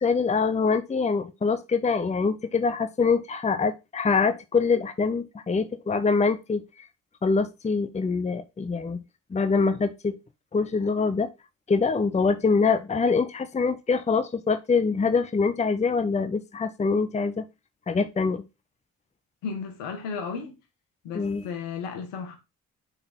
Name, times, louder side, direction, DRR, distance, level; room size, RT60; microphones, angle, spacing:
voice 1, 0.0-6.9 7.2-9.0 9.3-10.2 10.5-11.3 11.7-17.4 17.9-18.4 21.1-21.4, left 4 dB, 15° left, 0.7 m, -24 dB
voice 2, 19.4-20.6 21.0-22.4, left 5 dB, 75° left, 1.6 m, -34 dB
6.6 x 3.9 x 4.4 m
hypercardioid pair, 45°, 43 cm